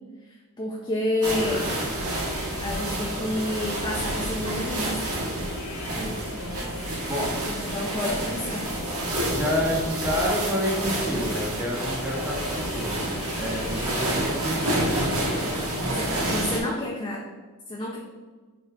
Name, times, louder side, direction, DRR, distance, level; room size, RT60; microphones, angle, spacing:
voice 1, 0.6-1.7 2.6-5.0 7.5-8.7 15.9-17.2 17.7-18.0, left 1 dB, 20° left, -3 dB, 0.7 m, -29 dB
sound 1, 1.2-16.6, right 1 dB, 75° right, 1.7 m, -29 dB
sound 2, 1.3-16.0, left 4 dB, 85° left, 0.5 m, -41 dB
voice 2, 9.3-13.0 13.3-14.9, equal, 10° right, -4 dB, 1.4 m, -28 dB
5.2 x 3.8 x 4.7 m, 1.3 s
head